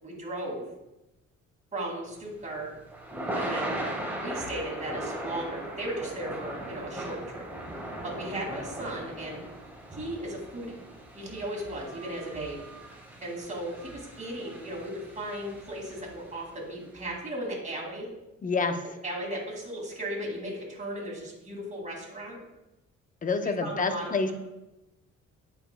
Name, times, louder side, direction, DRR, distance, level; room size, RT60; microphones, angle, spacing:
voice 1, 0.0-0.7 1.7-2.7 3.4-7.4 8.0-9.4 9.9-10.8 11.1-12.6 13.2-18.1 19.0-22.4 23.4-24.3, right 1 dB, 25° right, -2 dB, 2.2 m, -36 dB
Thunder / Rain, 2.2-16.4, right 1 dB, 5° right, 1.5 m, -39 dB
voice 2, 18.4-18.8 23.2-24.3, left 4 dB, 25° left, 8 dB, 0.6 m, -27 dB
8.5 x 5.1 x 2.2 m, 0.95 s
cardioid pair, 90°, 30 cm